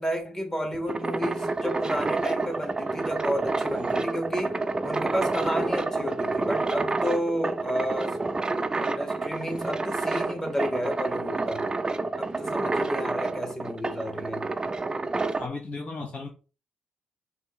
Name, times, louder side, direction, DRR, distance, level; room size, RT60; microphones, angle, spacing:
voice 1, 0.0-8.2 8.8-11.7 12.2-14.5, equal, 15° left, 1.5 m, -31 dB
sound 1, 0.6-15.5, right 3 dB, 25° right, 0.4 m, -29 dB
voice 2, 15.4-16.3, left 3 dB, 40° left, 0.7 m, -35 dB
5.3 x 2.7 x 3.2 m
supercardioid pair, 55°, 3 cm